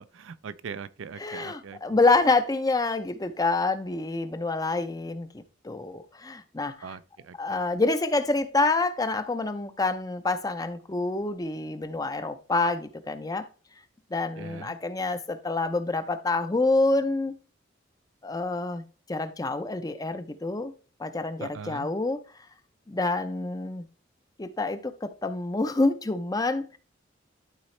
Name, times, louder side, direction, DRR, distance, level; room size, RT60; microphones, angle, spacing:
voice 1, 0.0-1.8 6.8-7.6 14.4-14.8 21.4-21.9, right 6 dB, 85° right, 0.4 m, -41 dB
voice 2, 1.2-6.9 7.4-13.5 14.1-17.3 18.2-18.8 19.1-20.7 21.0-22.2 22.9-23.9 24.4-26.7, left 3 dB, 20° left, 0.5 m, -27 dB
11.5 x 4.1 x 3.2 m
head